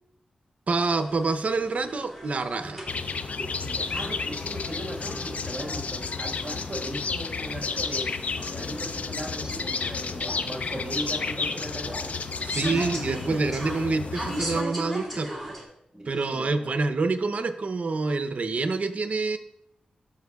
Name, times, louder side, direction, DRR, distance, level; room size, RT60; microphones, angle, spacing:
voice 1, 0.7-2.8 12.4-15.3 16.1-19.4, right 3 dB, 55° right, 9 dB, 0.7 m, -27 dB
sound 1, 0.8-15.6, right 1 dB, 5° left, 2.6 m, -39 dB
sound 2, 2.9-14.6, left 4 dB, 55° left, 0.4 m, -32 dB
voice 2, 3.6-8.1 8.5-12.4 15.9-16.7, right 1 dB, 30° right, -3 dB, 1.6 m, -38 dB
13.0 x 5.3 x 2.3 m, 0.77 s
cardioid pair, 75°, 3 cm